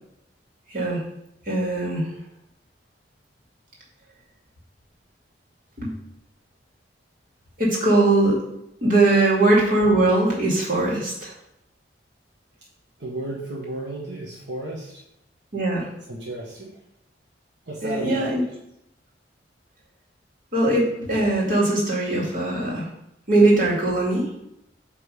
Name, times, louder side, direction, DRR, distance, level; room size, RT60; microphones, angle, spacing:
voice 1, 1.5-2.1 5.8-5.9 7.6-8.4 8.8-11.3 15.5-15.9 17.8-18.4 20.5-22.9 23.3-24.3, right 2 dB, 50° right, -4 dB, 2.6 m, -20 dB
voice 2, 13.0-15.0 16.1-16.7 17.7-18.3, right 1 dB, 75° right, -4 dB, 1.5 m, -33 dB
8.3 x 3.6 x 5.1 m, 0.81 s
head